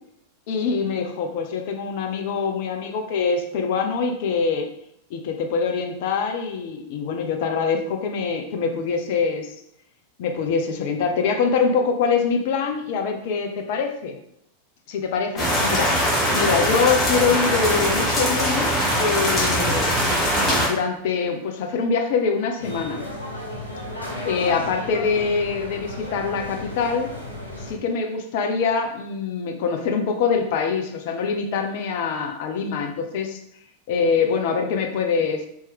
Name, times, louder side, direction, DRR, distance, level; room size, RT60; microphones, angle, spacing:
voice 1, 0.5-4.7 5.1-9.5 10.2-14.2 14.9-18.7 19.0-19.9 20.4-23.0 24.2-27.1 27.6-33.4 33.9-35.5, left 5 dB, 50° left, 4 dB, 0.6 m, -24 dB
sound 1, 15.4-20.7, equal, 20° left, 1.3 m, -21 dB
sound 2, 22.6-27.7, left 1 dB, 85° left, 0.8 m, -34 dB
4.3 x 3.1 x 3.5 m, 0.76 s
figure-of-eight pair, 90°, 0 cm